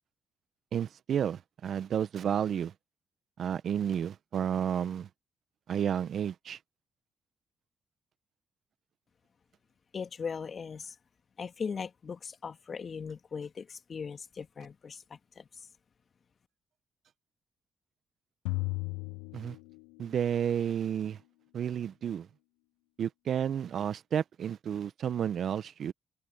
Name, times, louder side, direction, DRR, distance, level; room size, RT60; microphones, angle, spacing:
voice 1, 0.7-2.7 3.4-5.1 5.7-6.6 19.3-19.6 20.0-21.2 21.5-22.3 23.0-25.9, right 8 dB, 65° right, 1.3 m, -31 dB
voice 2, 9.9-10.9 11.4-15.5, left 6 dB, 50° left, 2.7 m, -39 dB
sound 1, 18.5-20.3, left 24 dB, 85° left, 0.6 m, -35 dB
open air
hypercardioid pair, 45°, 0 cm